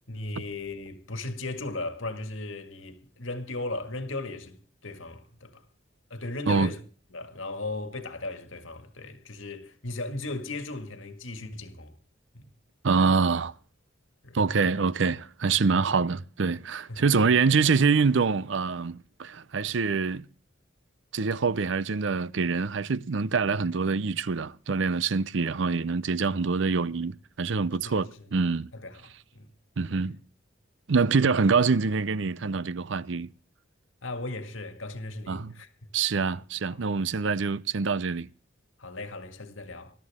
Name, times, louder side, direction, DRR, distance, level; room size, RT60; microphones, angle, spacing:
voice 1, 0.1-4.6 4.8-5.6 6.1-6.8 7.1-11.9 12.3-12.5 14.2-14.4 16.9-17.0 27.8-28.3 28.7-29.5 34.0-35.7 36.7-36.8 38.8-39.9, left 2 dB, 85° left, 2.0 m, -37 dB
voice 2, 12.8-13.5 14.3-20.3 21.1-28.7 29.8-30.2 30.9-33.3 35.3-35.5 35.9-38.3, right 4 dB, 70° right, 0.6 m, -25 dB
21.0 x 13.0 x 3.6 m
head